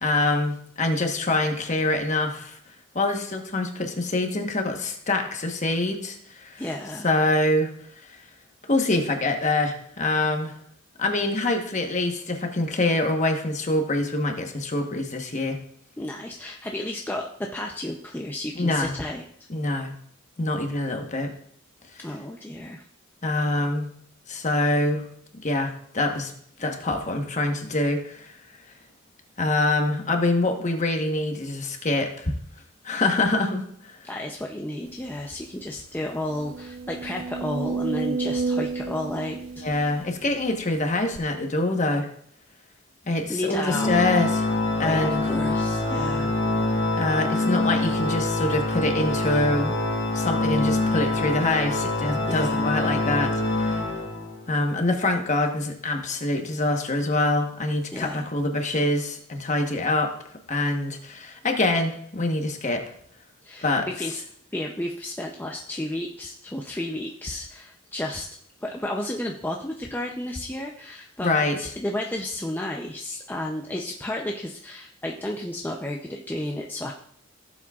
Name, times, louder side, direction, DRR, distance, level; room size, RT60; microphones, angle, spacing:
voice 1, 0.0-2.6 2.9-6.6 7.0-7.7 8.1-8.2 8.7-10.5 11.0-15.6 18.5-18.9 19.5-19.9 20.4-21.3 23.2-23.9 24.3-25.0 25.4-26.3 26.6-28.4 29.4-32.3 32.8-33.6 39.6-42.1 43.1-44.5 44.8-45.2 47.0-49.7 50.1-53.8 54.5-60.1 60.5-62.8 63.6-63.9 71.2-71.6, left 2 dB, 35° left, 3 dB, 1.1 m, -25 dB
voice 2, 6.6-7.1 16.0-19.5 22.0-22.8 32.9-33.1 34.0-39.7 43.3-43.9 44.8-46.3 52.3-52.7 57.9-58.3 63.4-64.2 64.5-68.3 68.6-76.9, left 1 dB, 10° left, 0 dB, 0.5 m, -32 dB
sound 1, 35.1-35.2 35.6-35.7 36.2-40.5 41.1-41.2, right 4 dB, 75° right, 0.6 m, -31 dB
Organ, 43.7-54.5, left 2 dB, 70° left, 1.4 m, -25 dB
15.5 x 7.4 x 2.4 m, 0.65 s
head